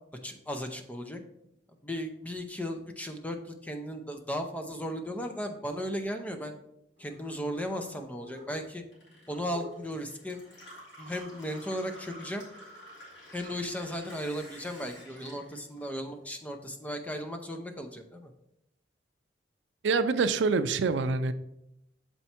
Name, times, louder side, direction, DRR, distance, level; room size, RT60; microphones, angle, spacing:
voice 1, 0.2-1.2 1.8-6.5 7.0-8.8 9.3-10.4 11.0-12.5 13.3-18.3, equal, 10° left, 5 dB, 0.5 m, -36 dB
Gurgling / Water tap faucet / Sink (filling or washing), 7.0-16.5 16.8-17.7, left 1 dB, 80° left, 2.4 m, -50 dB
voice 2, 19.8-21.3, right 4 dB, 75° right, 12 dB, 0.4 m, -26 dB
7.0 x 4.4 x 4.3 m, 0.82 s
head